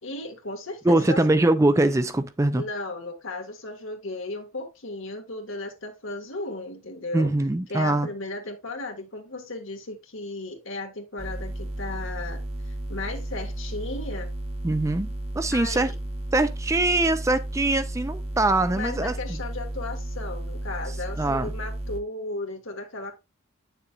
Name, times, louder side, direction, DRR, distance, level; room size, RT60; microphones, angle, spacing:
voice 1, 0.0-1.2 2.5-7.3 7.7-12.4 12.7-14.3 15.5-16.0 18.7-23.1, left 2 dB, 70° left, 1.8 m, -35 dB
voice 2, 0.8-2.7 7.1-8.1 14.6-15.1 15.3-15.9 16.3-19.4 21.2-21.5, right 2 dB, 15° right, 0.4 m, -23 dB
sound 1, 11.2-22.0, right 1 dB, 30° right, 1.1 m, -33 dB
8.6 x 6.8 x 2.4 m
head